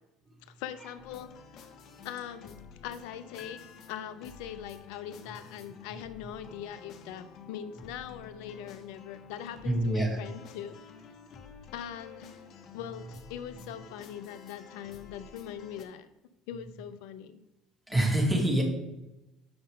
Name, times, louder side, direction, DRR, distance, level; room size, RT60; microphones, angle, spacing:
voice 1, 0.4-1.3 2.0-3.6 3.9-10.7 11.7-12.4 12.7-16.1 16.5-17.4, left 9 dB, 70° left, 13 dB, 0.5 m, -41 dB
sound 1, 1.0-15.8, left 6 dB, 55° left, 0.9 m, -51 dB
sound 2, 3.4-4.9, left 8 dB, 40° left, 1.2 m, -54 dB
voice 2, 9.6-10.2 17.9-18.6, right 1 dB, 10° right, 0 dB, 2.2 m, -25 dB
7.8 x 5.4 x 3.7 m, 0.95 s
hypercardioid pair, 70°, 0 cm